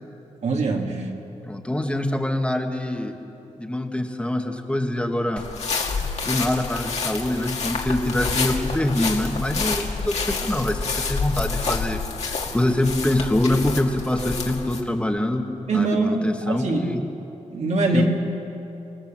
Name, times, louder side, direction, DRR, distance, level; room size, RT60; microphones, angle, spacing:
voice 1, 0.4-1.0 15.7-17.1 17.5-18.1, right 2 dB, 65° right, 1 dB, 2.7 m, -23 dB
voice 2, 1.4-3.1 3.6-5.4 6.2-12.0 12.3-15.4 15.7-17.0 17.9-18.1, left 1 dB, 10° left, 3 dB, 1.5 m, -24 dB
sound 1, 5.4-14.8, left 4 dB, 60° left, 2.3 m, -28 dB
26.0 x 18.0 x 7.5 m, 2.9 s
wide cardioid pair, 115°, 13 cm